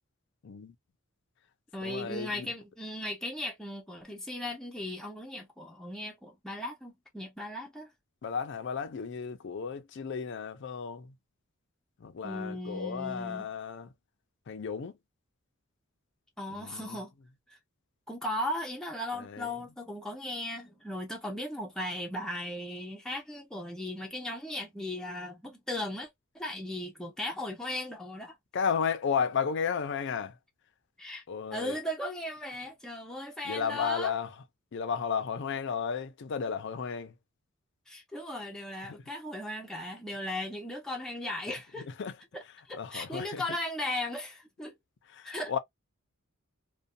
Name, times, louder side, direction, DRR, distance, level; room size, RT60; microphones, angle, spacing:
voice 1, 0.4-0.7 1.8-2.5 8.2-11.1 12.0-13.9 14.5-14.9 16.5-17.0 19.1-19.5 28.5-30.4 31.3-31.8 33.4-34.3 34.7-37.1 38.9-39.0 42.0-42.2 42.7-43.4 45.1-45.6, left 6 dB, 55° left, 0.4 m, -33 dB
voice 2, 1.7-7.9 12.2-13.5 16.4-17.1 17.5-17.6 18.1-26.1 26.3-28.4 31.0-31.2 31.5-34.1 37.9-41.9 42.3-44.7 45.2-45.6, left 1 dB, 5° left, 0.5 m, -37 dB
2.6 x 2.1 x 2.5 m
head